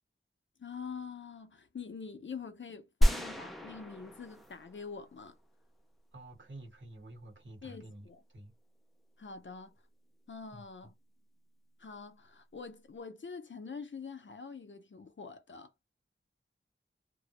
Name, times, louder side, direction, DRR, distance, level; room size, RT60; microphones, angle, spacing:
voice 1, 0.6-5.4 7.6-8.2 9.2-9.8 10.3-10.9 11.8-15.7, left 5 dB, 65° left, 0.5 m, -45 dB
sound 1, 3.0-5.3, equal, ahead, 0.5 m, -30 dB
voice 2, 6.1-8.5 10.5-10.9, right 1 dB, 65° right, 1.1 m, -50 dB
2.2 x 2.0 x 2.7 m
wide cardioid pair, 45°, 21 cm